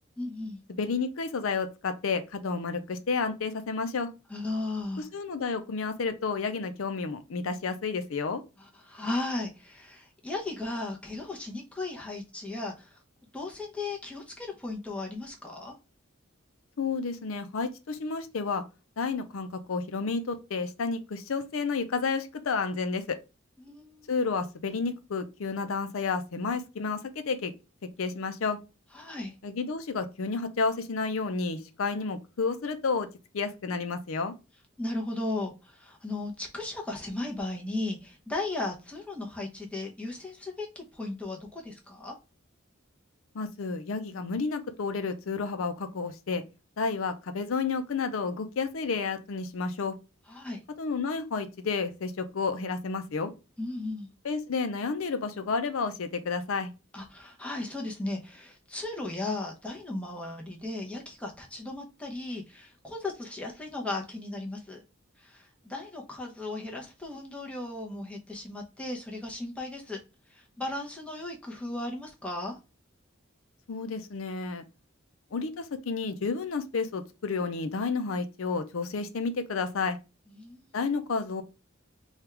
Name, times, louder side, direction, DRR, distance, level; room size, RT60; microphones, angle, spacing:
voice 1, 0.2-0.6 4.3-5.1 8.8-12.9 13.3-15.7 23.6-24.1 28.9-29.3 34.8-42.1 50.3-50.6 53.6-54.1 56.9-64.8 65.2-70.0 70.3-72.6 80.3-80.8, left 2 dB, 5° left, 0.8 m, -36 dB
voice 2, 0.7-4.1 5.1-8.4 16.8-18.6 19.0-23.2 24.1-27.5 28.0-28.6 29.4-33.1 33.3-34.3 43.3-46.4 46.8-50.0 50.8-53.3 54.2-56.7 73.7-74.6 75.3-80.0 80.7-81.4, left 4 dB, 80° left, 0.5 m, -31 dB
3.4 x 2.4 x 4.4 m
head